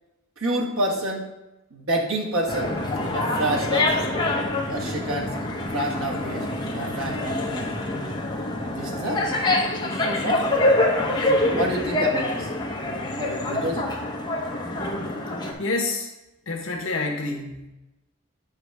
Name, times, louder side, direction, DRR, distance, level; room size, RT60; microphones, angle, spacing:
voice 1, 0.4-1.3 1.7-2.7 3.1-4.0 4.7-5.3 5.7-6.5 6.7-7.7 8.7-9.3 9.8-12.5 13.2-13.9, right 1 dB, 80° right, -1 dB, 1.4 m, -29 dB
sound 1, 2.5-15.5, left 2 dB, 20° left, 0.9 m, -25 dB
voice 2, 15.6-16.1 16.5-17.7, left 3 dB, 70° left, 1 dB, 1.1 m, -28 dB
8.1 x 5.3 x 3.4 m, 0.98 s
head